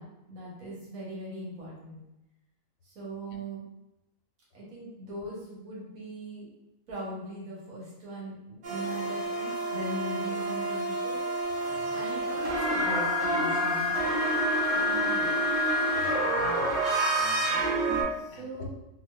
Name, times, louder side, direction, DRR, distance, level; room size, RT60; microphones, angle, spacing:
voice 1, 0.0-2.0 2.8-3.6 4.5-6.5 6.9-11.2 11.9-13.9 14.7-15.3 18.2-18.7, right 1 dB, 85° right, -5 dB, 1.4 m, -40 dB
sound 1, 8.6-18.0, right 1 dB, 60° right, 1.0 m, -28 dB
voice 2, 11.5-12.0 16.0-16.7 17.2-17.4 18.3-18.7, left 4 dB, 80° left, 2 dB, 1.0 m, -47 dB
4.3 x 2.2 x 2.3 m, 0.93 s
omnidirectional pair, 1.4 m